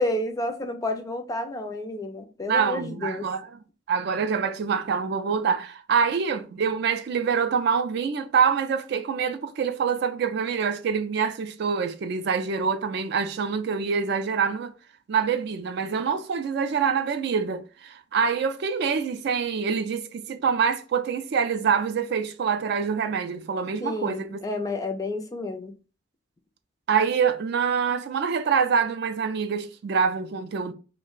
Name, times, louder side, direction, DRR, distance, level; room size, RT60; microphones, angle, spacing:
voice 1, 0.0-3.3 23.8-25.7, left 2 dB, 20° left, 0.3 m, -30 dB
voice 2, 2.5-3.6 3.9-14.7 15.1-24.4 26.9-30.7, right 6 dB, 55° right, 0.3 m, -25 dB
2.5 x 2.1 x 3.7 m
head